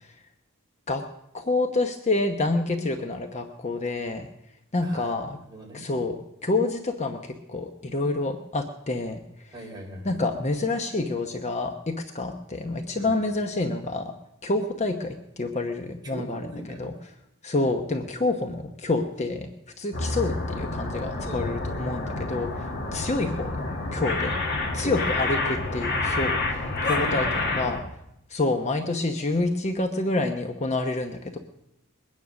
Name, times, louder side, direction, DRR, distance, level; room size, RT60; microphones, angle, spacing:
voice 1, 1.3-4.3 4.7-5.4 5.7-6.2 6.4-9.2 10.0-14.1 14.4-16.9 17.4-19.5 19.8-24.4 24.7-27.3 27.6-27.8 28.3-31.4, left 2 dB, 30° left, 5 dB, 0.9 m, -28 dB
voice 2, 4.8-5.8 9.5-10.2 12.9-13.1 16.0-16.9 21.2-21.5 22.3-22.5 24.7-25.0 26.8-27.7, right 1 dB, 20° right, -1 dB, 3.9 m, -40 dB
sound 1, 19.9-27.8, left 2 dB, 50° left, 2.0 m, -28 dB
21.5 x 9.7 x 6.3 m, 0.83 s
head